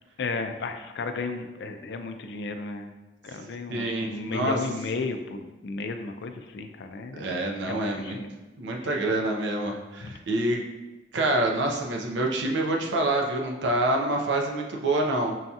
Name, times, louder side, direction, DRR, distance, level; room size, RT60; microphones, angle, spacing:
voice 1, 0.2-2.9 3.2-7.4 7.7-8.3 8.9-9.0 10.0-10.1, left 3 dB, 70° left, 7 dB, 0.3 m, -34 dB
voice 2, 3.7-4.6 7.1-8.2 8.6-10.6 11.1-15.4, right 1 dB, 85° right, 1 dB, 0.5 m, -26 dB
5.5 x 2.3 x 2.7 m, 1.1 s
head